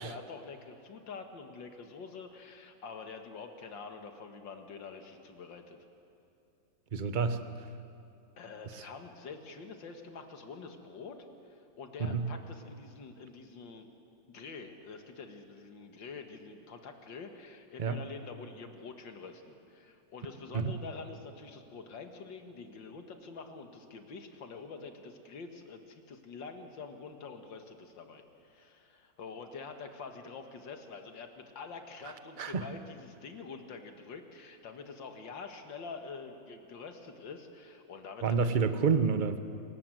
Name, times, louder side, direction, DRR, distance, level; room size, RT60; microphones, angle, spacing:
voice 1, 0.0-5.8 8.4-13.9 14.2-38.6, left 4 dB, 80° left, 5 dB, 2.4 m, -46 dB
voice 2, 6.9-7.7 8.7-8.8 12.0-12.3 17.8-18.0 20.5-20.7 32.0-32.7 38.2-39.4, right 5 dB, 35° right, 9 dB, 0.9 m, -29 dB
27.5 x 19.0 x 7.8 m, 2.7 s
omnidirectional pair, 2.0 m